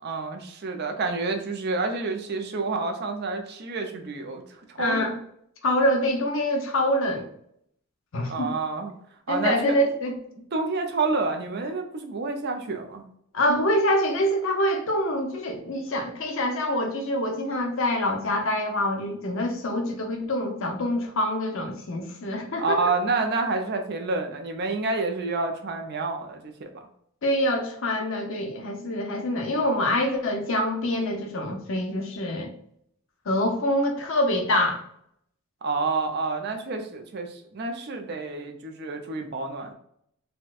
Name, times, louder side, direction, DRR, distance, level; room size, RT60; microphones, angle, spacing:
voice 1, 0.0-5.1 8.3-8.9 9.3-9.8 10.5-13.0 22.6-26.7 35.6-39.7, right 3 dB, 50° right, 5 dB, 0.5 m, -29 dB
voice 2, 4.8-5.2 5.6-7.3 8.1-8.5 9.3-10.1 13.3-22.9 27.2-32.5 33.3-34.8, left 1 dB, 60° left, 3 dB, 0.6 m, -25 dB
4.1 x 2.2 x 2.3 m, 0.70 s
head